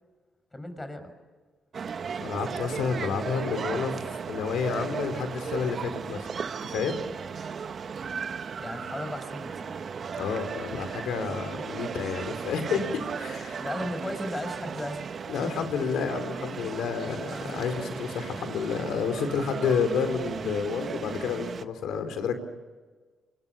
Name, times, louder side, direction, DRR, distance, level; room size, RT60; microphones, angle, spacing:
voice 1, 0.5-1.1 8.6-9.7 11.2-11.4 13.3-15.0 17.3-17.9, left 1 dB, 15° left, 9 dB, 5.9 m, -36 dB
sound 1, 1.7-21.6, right 6 dB, 50° right, 1.3 m, -36 dB
voice 2, 2.2-6.3 6.6-7.0 10.2-13.6 15.3-22.3, left 6 dB, 75° left, 8 dB, 4.1 m, -30 dB
28.0 x 26.0 x 7.1 m, 1.4 s
cardioid pair, 90°, 0 cm